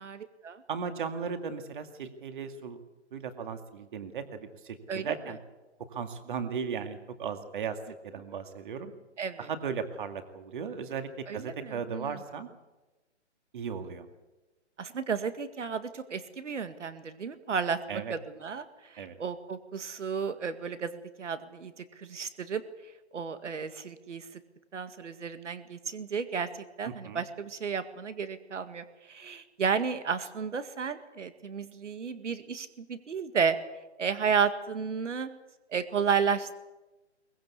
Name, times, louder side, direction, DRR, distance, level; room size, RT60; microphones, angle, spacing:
voice 1, 0.0-0.6 4.9-5.1 9.2-9.5 11.3-12.1 14.8-17.8 18.1-22.6 23.1-24.3 24.7-26.5 26.8-33.6 34.0-35.3 35.7-36.5, right 6 dB, 80° right, 11 dB, 2.0 m, -32 dB
voice 2, 0.7-2.8 3.1-5.4 5.9-8.9 9.4-12.5 13.5-14.1 17.9-18.1 19.0-19.2 26.8-27.2, right 6 dB, 45° right, 8 dB, 2.3 m, -36 dB
23.0 x 20.0 x 8.4 m, 1.1 s
hypercardioid pair, 170°, 36 cm